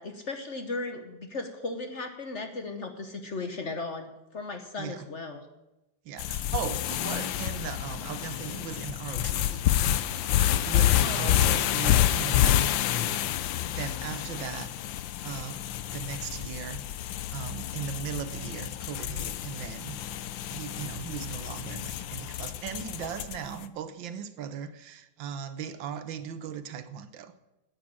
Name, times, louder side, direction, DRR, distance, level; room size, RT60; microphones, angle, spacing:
voice 1, 0.0-5.4 10.9-11.6, left 3 dB, 45° left, 6 dB, 1.1 m, -36 dB
voice 2, 6.0-9.6 10.3-14.7 15.2-15.7 15.9-20.0 20.5-27.3, right 8 dB, 75° right, 12 dB, 1.5 m, -38 dB
sound 1, 6.2-23.6, left 12 dB, 80° left, 1.4 m, -28 dB
10.5 x 8.5 x 8.6 m, 0.98 s
omnidirectional pair, 2.1 m